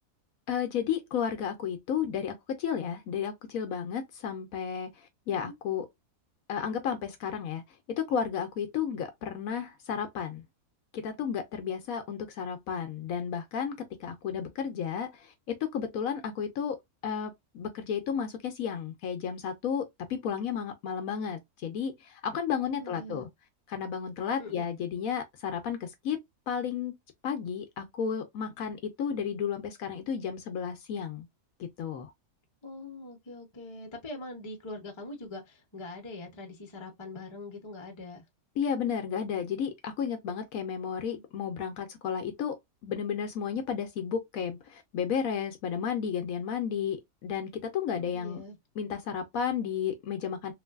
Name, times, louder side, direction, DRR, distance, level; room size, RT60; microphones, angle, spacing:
voice 1, 0.5-4.9 5.3-5.9 6.5-7.6 8.0-10.4 10.9-15.3 15.6-16.8 17.0-23.3 23.7-26.2 26.5-26.9 27.2-31.3 31.6-32.1 38.6-42.6 42.8-48.4 48.8-50.5, left 7 dB, 70° left, 1.0 m, -33 dB
voice 2, 22.6-23.3 24.4-24.7 32.6-38.2 41.1-41.2 47.9-48.6, left 2 dB, 25° left, 0.7 m, -43 dB
3.2 x 2.5 x 2.3 m
omnidirectional pair, 1.6 m